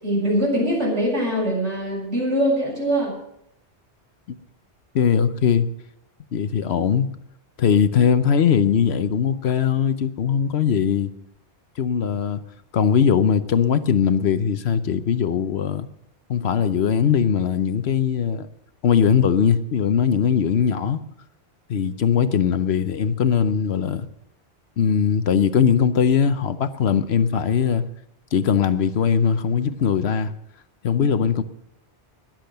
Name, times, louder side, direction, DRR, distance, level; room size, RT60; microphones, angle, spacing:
voice 1, 0.0-3.1, equal, 80° right, 7.5 m, -22 dB
voice 2, 4.9-5.7 6.3-7.1 7.6-11.1 11.8-12.4 12.7-15.9 16.3-18.5 18.8-21.0 21.7-24.1 24.8-27.9 28.3-30.3 30.8-31.4, left 7 dB, 70° left, 1.0 m, -20 dB
20.5 x 7.6 x 6.7 m
omnidirectional pair, 1.2 m